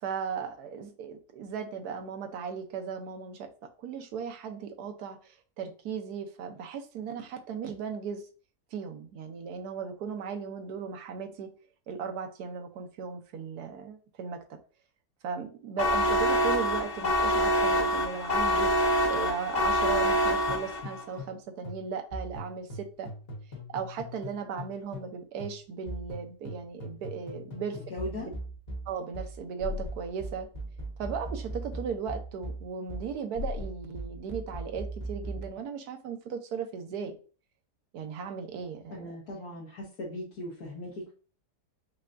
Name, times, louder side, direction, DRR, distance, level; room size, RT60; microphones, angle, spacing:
voice 1, 0.0-8.3 8.7-11.5 11.9-14.6 15.2-18.7 19.1-23.1 23.7-27.8 28.2-28.3 28.9-30.5 31.0-37.1 37.9-39.2, right 6 dB, 75° right, 5 dB, 1.2 m, -37 dB
sound 1, 15.8-21.0, equal, 85° left, 0.4 m, -26 dB
sound 2, 20.5-21.4 21.6-25.1 25.4-35.5, equal, 40° left, 1.4 m, -39 dB
voice 2, 27.9-28.3 38.9-41.1, left 1 dB, 65° left, -6 dB, 1.6 m, -38 dB
5.5 x 2.3 x 2.5 m, 0.38 s
omnidirectional pair, 1.7 m